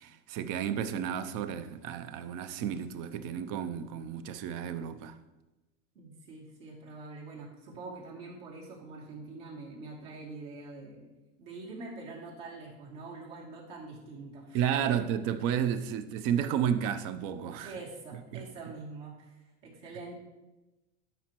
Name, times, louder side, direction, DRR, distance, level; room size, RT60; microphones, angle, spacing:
voice 1, 0.0-5.2 14.5-17.7 18.3-18.4, right 9 dB, 50° right, 0.7 m, -32 dB
voice 2, 5.9-11.1 11.4-15.0 17.6-20.2, right 3 dB, 70° right, 2.7 m, -45 dB
12.0 x 5.2 x 3.0 m
hypercardioid pair, 95°, 39 cm